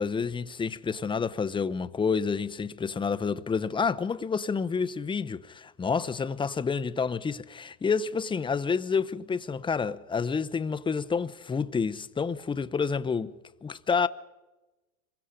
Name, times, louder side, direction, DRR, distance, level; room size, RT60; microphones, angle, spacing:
voice 1, 0.0-13.3 13.6-14.1, left 5 dB, 10° left, 0.8 m, -29 dB
26.0 x 23.5 x 5.2 m
hypercardioid pair, 105°, 42 cm